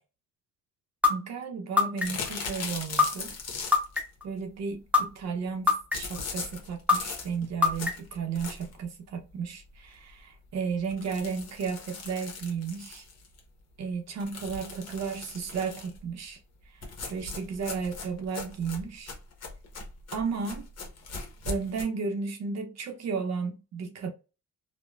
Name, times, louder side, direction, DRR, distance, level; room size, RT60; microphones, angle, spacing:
sound 1, 1.0-1.1 1.8-2.3 3.0-3.1 3.7-4.2 4.9-5.0 5.7-6.2 6.9-7.0 7.6-8.1, left 5 dB, 5° right, 0.8 m, -21 dB
voice 1, 1.1-3.4 4.2-13.1 13.8-16.4 16.7-19.1 20.1-20.7 21.5-24.1, right 5 dB, 60° right, 0.6 m, -34 dB
sound 2, 2.0-4.0 5.9-8.8 9.3-9.4 9.7-9.8 10.1-10.2 10.9-13.4 14.2-16.0 16.8-21.8, left 4 dB, 60° left, 1.0 m, -39 dB
3.1 x 2.1 x 2.2 m
cardioid pair, 90°, 30 cm